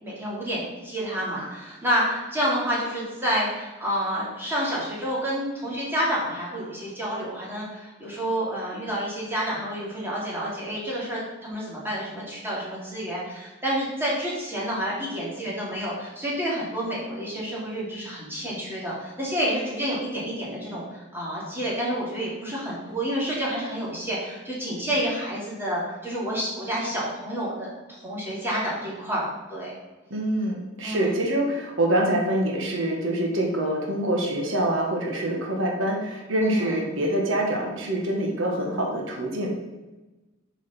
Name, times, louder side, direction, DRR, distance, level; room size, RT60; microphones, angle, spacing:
voice 1, 0.0-29.7 30.8-31.1 36.4-36.8, equal, 10° right, -7 dB, 2.5 m, -29 dB
voice 2, 30.1-39.5, right 1 dB, 75° right, 0 dB, 1.3 m, -25 dB
7.1 x 5.0 x 4.2 m, 1.1 s
head